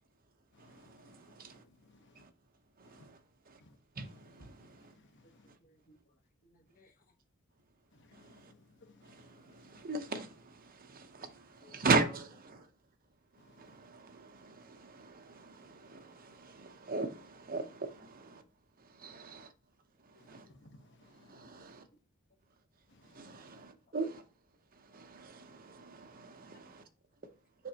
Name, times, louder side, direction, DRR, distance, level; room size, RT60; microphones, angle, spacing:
voice 1, 0.0-1.6 2.1-2.3 2.7-3.2 3.5-3.6 4.0-5.0 5.5-5.6 7.5-8.5 9.0-20.5 21.3-21.9 22.4-27.7, right 3 dB, 45° right, 0.8 m, -40 dB
voice 2, 0.5-2.2 2.8-3.1 3.6-5.5 7.9-9.9 13.4-13.8 20.2-21.8 22.9-23.6, left 2 dB, 60° left, 1.0 m, -63 dB
voice 3, 5.6-7.1 11.6-11.9 20.1-20.2 21.4-21.7, left 1 dB, 45° left, 1.2 m, -65 dB
7.3 x 5.8 x 2.9 m
head